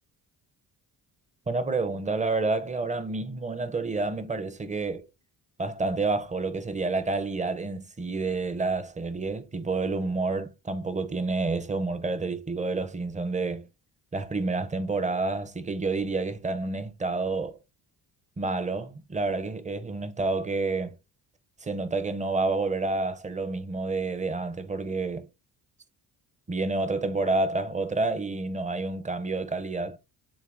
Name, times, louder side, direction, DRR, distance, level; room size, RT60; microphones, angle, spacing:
voice 1, 1.5-5.1 5.6-13.7 14.1-17.6 18.4-21.0 21.6-25.3 26.5-30.0, right 3 dB, 20° right, 0.6 m, -29 dB
7.1 x 2.7 x 2.5 m
cardioid pair, 90°, 40 cm